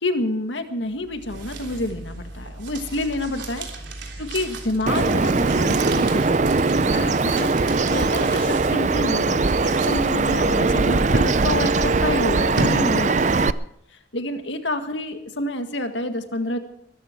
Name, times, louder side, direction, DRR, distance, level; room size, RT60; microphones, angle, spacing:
voice 1, 0.0-3.7 4.2-7.5 7.9-13.5 14.1-16.6, left 1 dB, 80° left, 7 dB, 1.9 m, -28 dB
sound 1, 0.9-13.5, right 2 dB, 80° right, 3.4 m, -35 dB
Bird vocalization bird call bird song, 4.9-13.5, right 3 dB, 40° right, 0.5 m, -20 dB
22.0 x 13.5 x 4.6 m, 0.71 s
head